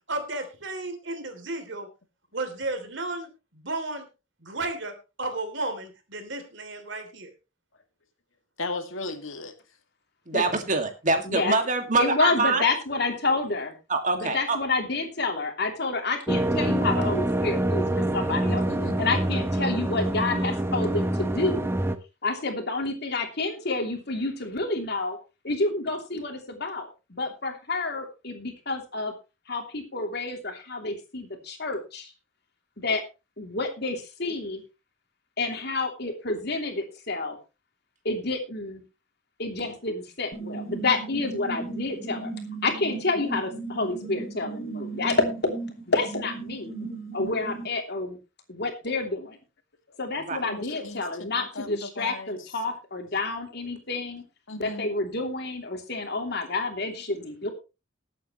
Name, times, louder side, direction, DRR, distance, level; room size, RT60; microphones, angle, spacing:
voice 1, 0.1-1.9 2.3-4.1 4.4-4.9 5.2-7.3, right 2 dB, 65° right, 7 dB, 3.1 m, -33 dB
voice 2, 8.6-9.5 18.5-19.0 50.4-51.0 51.4-52.4 54.5-54.9, left 2 dB, 90° left, 7 dB, 2.1 m, -36 dB
voice 3, 10.3-12.6 13.9-14.6 50.3-50.4, right 3 dB, 40° right, 6 dB, 2.1 m, -24 dB
voice 4, 11.3-11.6 12.0-13.7 14.1-17.8 18.1-18.6 19.0-21.7 22.2-25.2 25.4-29.1 29.5-32.1 32.8-33.0 33.4-34.6 35.4-37.4 38.0-38.8 39.4-42.3 42.6-45.2 45.9-46.8 47.1-48.2 48.5-49.4 50.0-54.2 54.6-57.5, left 3 dB, 55° left, 4 dB, 3.0 m, -29 dB
sound 1, 16.3-22.0, right 1 dB, 10° right, 0.9 m, -26 dB
sound 2, 40.3-47.7, right 3 dB, 40° left, 2.7 m, -36 dB
20.0 x 8.7 x 3.1 m, 0.29 s
head